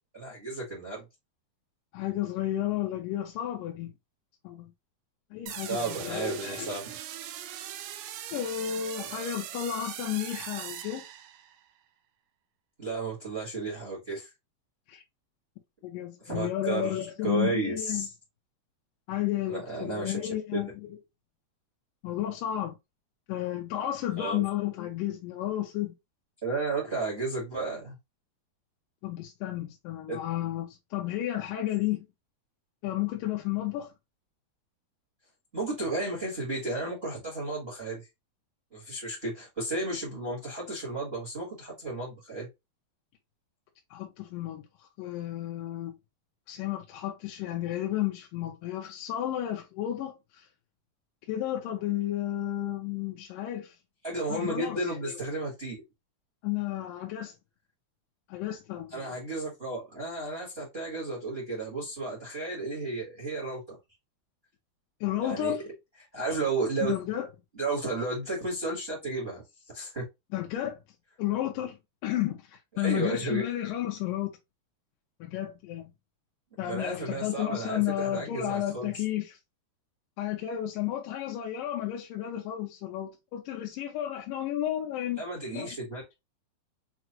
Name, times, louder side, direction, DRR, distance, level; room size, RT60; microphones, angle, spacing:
voice 1, 0.1-1.0 5.7-6.8 12.8-14.3 16.2-18.1 19.5-20.6 24.2-24.4 26.4-27.9 30.1-30.2 35.5-38.1 38.7-42.5 54.0-55.7 58.9-63.8 65.2-65.6 66.1-66.9 67.5-69.4 69.7-70.0 72.8-73.4 76.6-79.0 85.2-86.0, right 3 dB, 50° right, 0.6 m, -33 dB
voice 2, 1.9-3.9 4.4-4.7 5.3-6.8 8.3-11.0 14.9-15.0 15.8-18.1 19.1-21.0 22.0-22.8 23.3-25.9 29.0-32.1 32.8-33.9 43.9-44.6 45.0-46.0 46.5-50.5 51.3-53.8 54.3-55.2 56.4-57.3 58.3-59.1 65.0-65.6 66.8-67.3 70.3-70.8 71.2-71.8 72.0-74.4 75.2-75.9 76.6-79.4 80.2-85.2 85.5-85.7, left 12 dB, 80° left, 2.1 m, -32 dB
sound 1, 5.5-11.6, right 11 dB, 80° right, 1.9 m, -40 dB
5.9 x 2.1 x 2.9 m
omnidirectional pair, 4.2 m